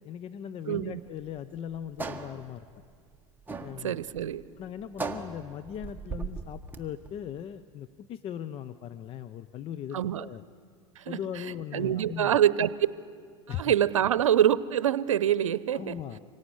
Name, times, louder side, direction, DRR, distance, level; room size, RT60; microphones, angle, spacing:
voice 1, 0.0-2.7 3.6-4.0 4.6-10.4 11.1-12.3 13.5-13.7 15.7-16.2, left 9 dB, 35° left, 13 dB, 0.7 m, -39 dB
voice 2, 0.7-1.0 3.8-4.4 9.9-10.2 11.0-11.2 11.7-12.7 13.6-15.9, right 10 dB, 85° right, 17 dB, 0.7 m, -25 dB
sound 1, 1.0-7.1, right 4 dB, 10° right, 1.6 m, -39 dB
25.5 x 18.0 x 9.9 m, 2.1 s
hypercardioid pair, 100°, 16 cm